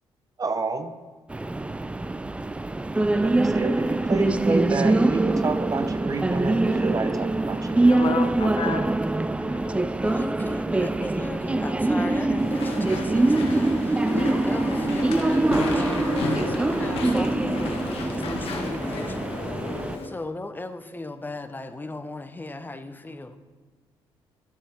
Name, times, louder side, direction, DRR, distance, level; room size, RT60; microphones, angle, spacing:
voice 1, 0.4-0.9 3.2-8.0, right 3 dB, 35° right, 9 dB, 0.8 m, -29 dB
sound 1, 1.3-20.0, right 2 dB, 10° right, 0.4 m, -24 dB
voice 2, 7.8-8.9 9.4-9.8 13.9-14.0 19.6-20.0, left 6 dB, 50° left, 9 dB, 0.7 m, -32 dB
voice 3, 10.0-19.6 20.0-23.4, left 2 dB, 20° left, 10 dB, 0.7 m, -37 dB
Walk footsteps / Chatter / Squeak, 12.4-20.1, left 4 dB, 70° left, 1.4 m, -33 dB
11.5 x 7.0 x 3.5 m, 1.4 s
supercardioid pair, 65°, 10 cm